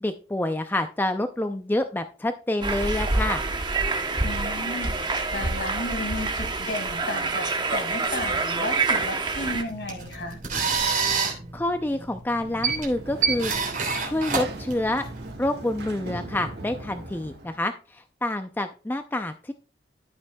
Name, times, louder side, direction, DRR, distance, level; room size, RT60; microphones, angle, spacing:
voice 1, 0.0-3.4 11.5-13.5 14.0-15.0 15.4-19.5, left 1 dB, 10° left, 0.4 m, -27 dB
sound 1, 2.6-9.6, right 3 dB, 25° right, 0.8 m, -27 dB
voice 2, 4.2-5.0 5.3-10.4, left 1 dB, 65° left, 2.2 m, -33 dB
sound 2, 9.7-15.3, right 5 dB, 45° right, 2.9 m, -28 dB
Sliding door, 12.3-17.6, right 2 dB, 60° right, 1.4 m, -39 dB
14.0 x 6.1 x 2.3 m
head